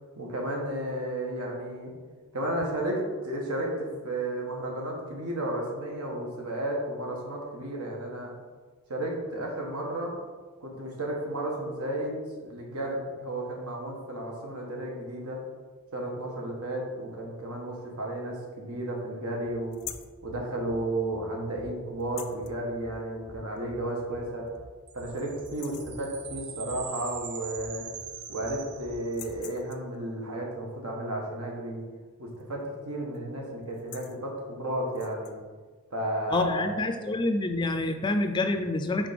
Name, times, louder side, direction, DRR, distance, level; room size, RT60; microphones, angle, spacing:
voice 1, 0.2-1.9 2.3-8.3 8.9-10.1 10.6-15.4 15.9-19.8 20.2-24.5 24.9-27.9 28.3-31.8 32.2-35.3 35.9-36.7, right 1 dB, 85° right, -1 dB, 1.4 m, -33 dB
sound 1, 19.7-20.2 22.0-22.5 23.9-24.0 24.5-24.6 25.0-25.2 25.4-26.0 27.4-27.5 27.7-28.5 29.0-30.0 32.3-32.6 32.9-33.2 33.6-34.2 34.9-35.4, left 13 dB, 85° left, 0.4 m, -45 dB
sound 2, 19.8-29.4, right 1 dB, 10° right, 0.7 m, -51 dB
sound 3, 24.9-29.5, right 7 dB, 50° right, 0.6 m, -42 dB
voice 2, 36.3-39.1, left 2 dB, 20° left, 7 dB, 0.3 m, -27 dB
5.0 x 3.7 x 5.1 m, 1.4 s
head